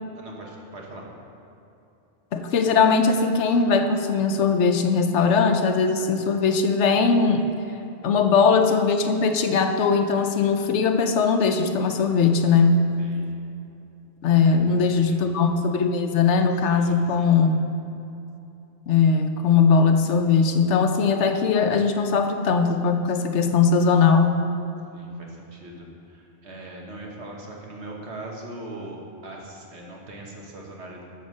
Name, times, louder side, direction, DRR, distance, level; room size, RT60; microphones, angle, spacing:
voice 1, 0.2-1.0 13.0-13.3 14.4-15.2 16.7-17.3 24.9-31.0, right 1 dB, 70° right, -1 dB, 1.7 m, -40 dB
voice 2, 2.3-7.4 8.0-12.8 14.2-17.6 18.9-24.3, left 5 dB, 80° left, 6 dB, 1.0 m, -20 dB
12.5 x 4.3 x 6.6 m, 2.8 s
omnidirectional pair, 1.2 m